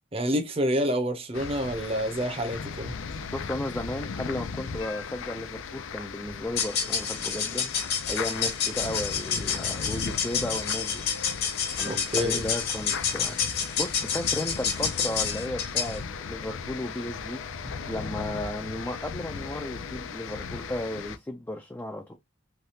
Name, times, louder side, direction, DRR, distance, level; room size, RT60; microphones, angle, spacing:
voice 1, 0.1-2.9 11.8-12.4, equal, 30° right, 0.7 m, -28 dB
sound 1, 1.3-21.2, left 5 dB, 90° left, 0.4 m, -37 dB
voice 2, 3.3-7.7 8.1-11.1 11.7-13.4 13.8-17.4 17.8-22.2, left 1 dB, 10° left, 0.3 m, -34 dB
sound 2, 6.5-16.0, left 7 dB, 55° left, 1.0 m, -29 dB
3.3 x 2.3 x 2.7 m
head